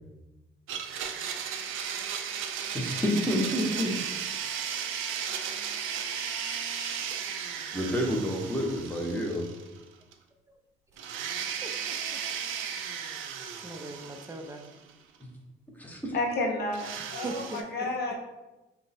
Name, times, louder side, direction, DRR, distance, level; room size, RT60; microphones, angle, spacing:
Domestic sounds home sounds, 0.7-9.8 10.1-10.2 11.0-14.9 16.7-17.6, right 7 dB, 90° right, 0.4 m, -35 dB
voice 1, 2.7-4.0 7.7-9.5 15.2-15.3 15.8-16.2, equal, 10° left, 0 dB, 0.7 m, -29 dB
voice 2, 11.6-12.2 13.6-14.6 17.2-18.2, right 2 dB, 15° right, 5 dB, 0.4 m, -40 dB
voice 3, 16.1-18.2, left 2 dB, 55° left, 1 dB, 0.8 m, -31 dB
3.2 x 2.1 x 4.0 m, 1.1 s
cardioid pair, 90°, 20 cm